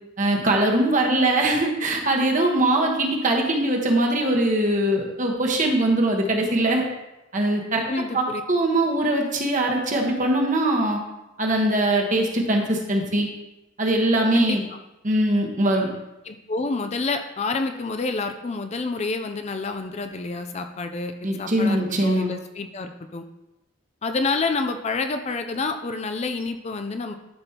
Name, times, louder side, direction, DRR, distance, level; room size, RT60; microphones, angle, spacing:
voice 1, 0.2-6.8 7.3-7.8 8.1-11.0 11.4-13.3 13.8-14.6 15.0-15.9 21.2-22.3, right 1 dB, 40° right, 1 dB, 1.2 m, -21 dB
voice 2, 7.9-8.4 14.3-14.8 16.3-23.2 24.0-27.1, left 3 dB, 35° left, 7 dB, 0.4 m, -28 dB
12.0 x 5.3 x 2.9 m, 0.97 s
head